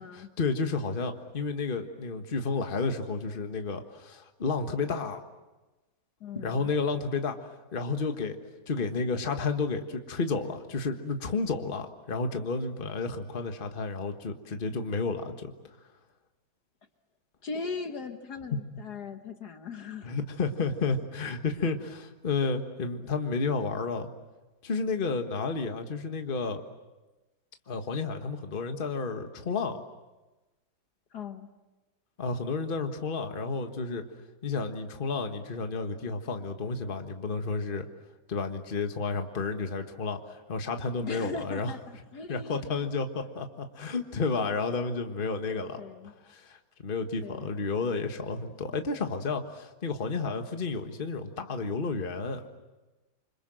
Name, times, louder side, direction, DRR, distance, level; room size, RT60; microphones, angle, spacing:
voice 1, 0.4-5.2 6.3-8.4 8.7-15.5 20.0-24.1 24.6-26.6 27.7-29.8 32.2-34.0 34.4-37.9 38.3-41.7 42.3-45.8 46.2-52.4, left 4 dB, 30° left, 6 dB, 1.6 m, -31 dB
voice 2, 6.2-6.7 17.4-20.2 31.1-31.5 41.0-42.9 45.8-46.1 47.2-47.5, left 4 dB, 60° left, 7 dB, 1.7 m, -39 dB
28.0 x 25.5 x 7.7 m, 1.1 s
omnidirectional pair, 2.1 m